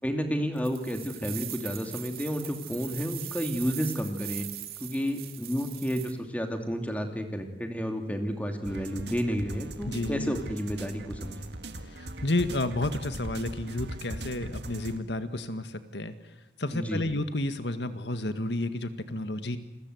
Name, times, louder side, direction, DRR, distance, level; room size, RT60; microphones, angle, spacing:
voice 1, 0.0-4.5 4.8-11.5 16.7-17.0, equal, 10° left, 5 dB, 2.7 m, -31 dB
sound 1, 0.6-6.1, right 13 dB, 60° right, 2.7 m, -41 dB
sound 2, 8.6-15.0, right 1 dB, 85° right, 1.9 m, -40 dB
voice 2, 9.9-10.3 11.9-16.3 16.6-19.6, left 2 dB, 90° left, 9 dB, 1.9 m, -31 dB
29.0 x 21.5 x 8.1 m, 1.0 s
head